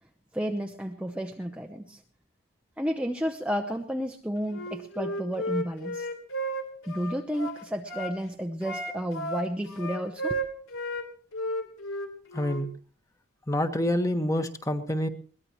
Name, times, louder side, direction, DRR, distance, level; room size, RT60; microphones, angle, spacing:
voice 1, 0.3-2.0 2.8-6.1 6.9-10.4, equal, 5° right, 3 dB, 0.8 m, -32 dB
Wind instrument woodwind instrument, 4.5-8.2 8.6-11.1 11.3-12.6, equal, 75° left, 3.4 m, -33 dB
voice 2, 12.3-12.7 13.5-15.1, left 1 dB, 15° left, 7 dB, 1.4 m, -27 dB
22.0 x 19.5 x 3.0 m, 0.42 s
head